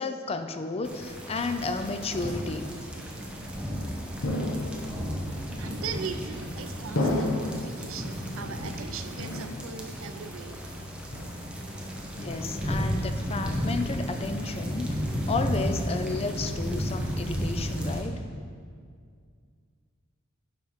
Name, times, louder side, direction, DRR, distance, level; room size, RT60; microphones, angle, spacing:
voice 1, 0.0-2.7 12.2-15.0 15.3-18.2, left 3 dB, 30° left, 8 dB, 0.4 m, -32 dB
sound 1, 0.8-18.0, equal, 5° right, 0.9 m, -33 dB
sound 2, 4.2-5.1 5.9-6.4 7.0-7.8 8.3-8.9 9.2-10.0 10.3-10.7 11.1-11.7, left 1 dB, 65° left, 1.1 m, -31 dB
voice 2, 5.6-10.6, right 6 dB, 65° right, 9 dB, 0.5 m, -39 dB
10.0 x 4.5 x 5.6 m, 2.1 s
head